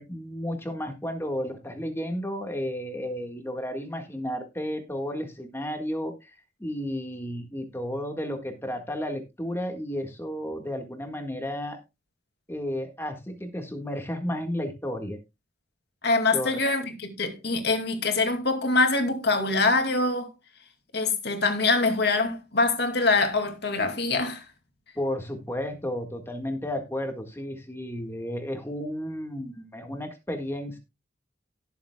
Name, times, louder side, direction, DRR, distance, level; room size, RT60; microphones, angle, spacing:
voice 1, 0.0-6.4 6.6-11.8 12.5-15.2 16.3-16.6 25.0-30.8, equal, 10° left, 1.7 m, -32 dB
voice 2, 16.0-20.3 20.9-24.4, left 3 dB, 55° left, 2.3 m, -24 dB
18.5 x 7.1 x 2.3 m
head